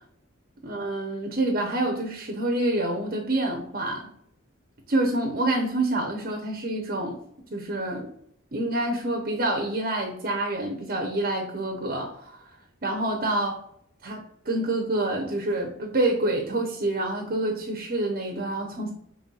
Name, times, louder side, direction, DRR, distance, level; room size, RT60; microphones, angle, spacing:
voice 1, 0.6-4.1 4.9-7.2 7.5-8.1 8.5-12.4 12.8-13.6 14.0-14.2 14.4-18.9, right 1 dB, 45° right, 1 dB, 0.9 m, -27 dB
5.4 x 3.4 x 2.4 m, 0.69 s
head